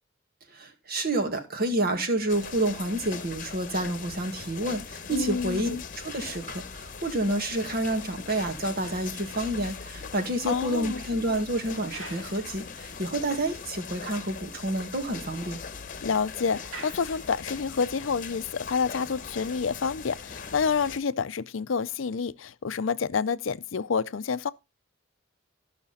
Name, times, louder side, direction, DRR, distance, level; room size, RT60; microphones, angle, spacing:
voice 1, 0.5-15.6, right 1 dB, 50° right, 1.8 m, -29 dB
sound 1, 2.3-21.0, left 5 dB, 45° left, 1.0 m, -40 dB
voice 2, 5.1-5.8 10.4-11.0 16.0-24.5, left 5 dB, 70° left, 0.5 m, -28 dB
sound 2, 9.8-13.5 13.8-13.9 14.3-14.4 14.6-17.9 18.6-18.8, right 3 dB, 75° right, 3.1 m, -50 dB
13.5 x 6.0 x 4.1 m
head